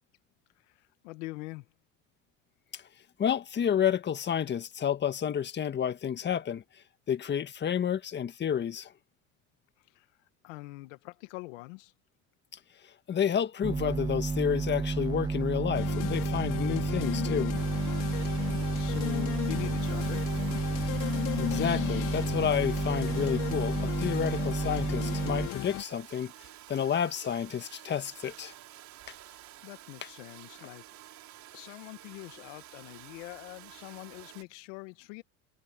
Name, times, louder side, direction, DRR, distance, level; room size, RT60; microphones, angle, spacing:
voice 1, 0.6-1.7 9.8-10.1 10.4-11.9 18.3-20.3 29.3-30.8 31.5-35.2, left 22 dB, 80° left, 1.5 m, -44 dB
voice 2, 3.2-6.6 7.1-8.9 13.1-17.5 21.4-26.3 26.7-28.5, left 8 dB, 30° left, 1.7 m, -30 dB
sound 1, 13.6-25.5, right 4 dB, 10° right, 0.5 m, -31 dB
sound 2, 15.7-25.8, left 18 dB, 60° left, 2.8 m, -35 dB
Domestic sounds home sounds, 17.5-34.4, right 14 dB, 50° right, 5.2 m, -50 dB
supercardioid pair, 115°, 35 cm